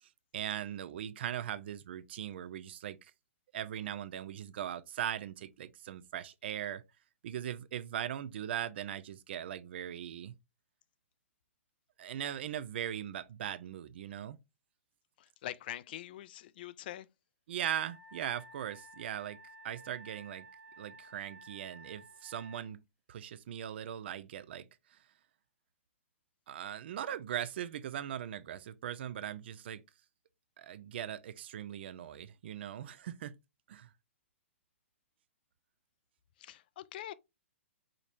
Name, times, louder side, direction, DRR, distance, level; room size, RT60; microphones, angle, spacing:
voice 1, 0.0-3.0 3.5-6.8 7.2-10.3 12.0-14.4 17.5-19.4 19.6-20.5 20.8-22.8 23.1-25.0 26.5-29.8 30.6-33.4 33.7-33.9, right 10 dB, 50° right, 0.4 m, -39 dB
voice 2, 15.2-17.1 36.4-37.1, left 13 dB, 45° left, 0.3 m, -44 dB
Wind instrument woodwind instrument, 17.8-22.7, right 1 dB, 20° right, 1.2 m, -54 dB
5.0 x 3.0 x 2.4 m
figure-of-eight pair, 115°, 7 cm